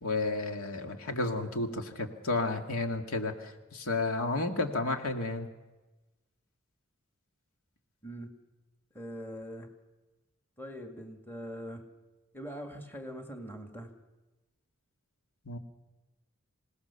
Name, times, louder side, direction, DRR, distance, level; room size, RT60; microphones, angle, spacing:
voice 1, 0.0-5.5 15.5-15.6, left 2 dB, 90° left, 4 dB, 2.2 m, -32 dB
voice 2, 8.0-8.3 8.9-9.7 10.6-11.8 12.3-13.9, equal, 10° left, 4 dB, 2.0 m, -42 dB
26.5 x 18.0 x 7.0 m, 1.1 s
head